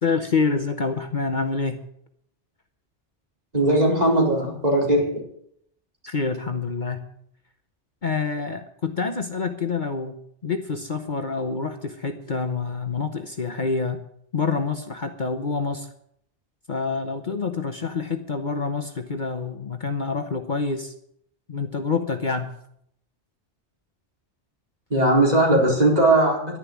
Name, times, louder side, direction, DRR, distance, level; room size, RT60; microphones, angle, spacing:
voice 1, 0.0-1.8 6.1-7.0 8.0-10.2 10.4-14.0 14.3-15.9 16.7-20.9 21.5-22.5, left 4 dB, 45° left, 7 dB, 1.1 m, -27 dB
voice 2, 3.5-5.1 24.9-26.6, right 1 dB, 35° right, -1 dB, 4.4 m, -19 dB
11.0 x 10.5 x 9.5 m, 0.70 s
omnidirectional pair, 1.2 m